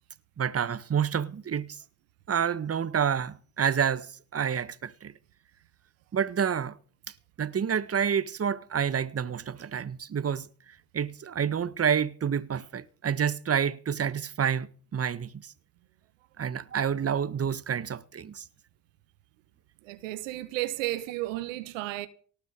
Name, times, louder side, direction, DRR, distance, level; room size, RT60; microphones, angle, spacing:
voice 1, 0.4-1.7 2.3-5.1 6.1-6.7 7.4-10.5 10.9-15.3 16.4-18.4, right 7 dB, 40° right, 1.6 m, -28 dB
voice 2, 19.8-22.1, right 16 dB, 90° right, 1.3 m, -33 dB
19.0 x 9.9 x 6.6 m
hypercardioid pair, 55°, 37 cm